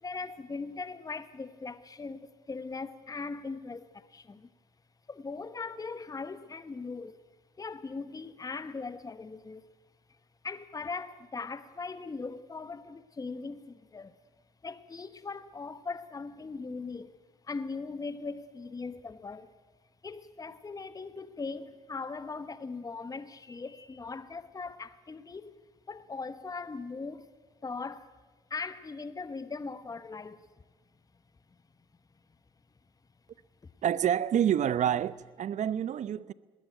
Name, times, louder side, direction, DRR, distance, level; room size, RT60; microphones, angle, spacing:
voice 1, 0.0-4.5 5.1-7.2 7.6-9.7 10.4-14.1 14.6-17.2 17.4-19.6 20.0-25.6 25.9-27.3 27.6-28.1 28.5-30.5, left 4 dB, 25° left, 1.1 m, -40 dB
voice 2, 33.8-36.3, right 10 dB, 55° right, 0.8 m, -28 dB
20.5 x 17.5 x 9.1 m
hypercardioid pair, 60°, 15 cm